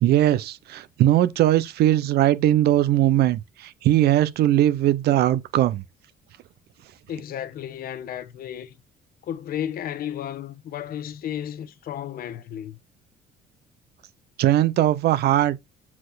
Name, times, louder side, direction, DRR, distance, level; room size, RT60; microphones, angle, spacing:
voice 1, 0.0-5.8 14.4-15.6, right 13 dB, 70° right, 0.8 m, -20 dB
voice 2, 7.1-8.8 9.2-12.8, left 10 dB, 60° left, 1.0 m, -33 dB
7.4 x 4.3 x 4.0 m
cardioid pair, 110°, 17 cm